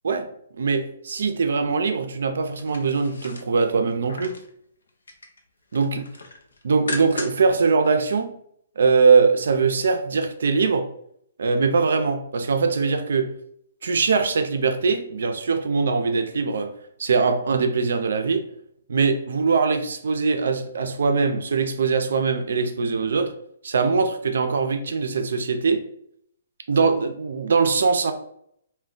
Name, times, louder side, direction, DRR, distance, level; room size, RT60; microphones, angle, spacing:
voice 1, 0.5-4.4 5.7-6.0 6.6-8.3 8.8-10.9 11.4-13.3 13.8-16.7 17.0-18.5 18.9-23.3 23.6-25.8 26.7-28.1, right 4 dB, 75° right, 7 dB, 0.4 m, -22 dB
sound 1, 2.4-4.5 4.9-5.4 5.7-7.6 7.9-8.0, left 3 dB, 90° left, 0.5 m, -37 dB
2.4 x 2.2 x 3.7 m, 0.68 s
hypercardioid pair, 155°, 0 cm